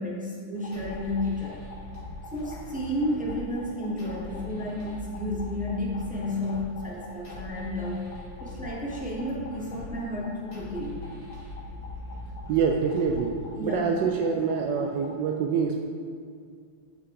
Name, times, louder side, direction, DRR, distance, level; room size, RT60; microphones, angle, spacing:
voice 1, 0.0-1.6 2.3-8.1 8.4-11.0 13.5-13.9, left 1 dB, 10° right, -5 dB, 0.4 m, -32 dB
sound 1, 0.6-15.2, left 3 dB, 85° left, 1.6 m, -47 dB
sound 2, 0.7-13.7, left 2 dB, 45° left, 2.0 m, -42 dB
voice 2, 12.5-15.8, right 6 dB, 75° right, 2 dB, 1.1 m, -26 dB
6.0 x 5.9 x 4.7 m, 2.2 s
omnidirectional pair, 2.2 m